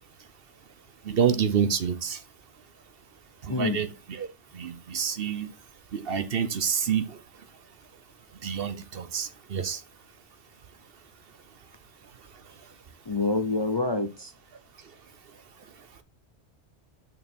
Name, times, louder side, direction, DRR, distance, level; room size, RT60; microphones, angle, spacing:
voice 1, 1.1-2.2 3.5-4.3 4.5-5.5 5.9-7.1 8.4-9.8, right 7 dB, 60° right, 0.9 m, -27 dB
voice 2, 3.5-3.8 13.1-14.3, left 3 dB, 30° left, 0.6 m, -27 dB
6.6 x 6.2 x 4.4 m
omnidirectional pair, 1.2 m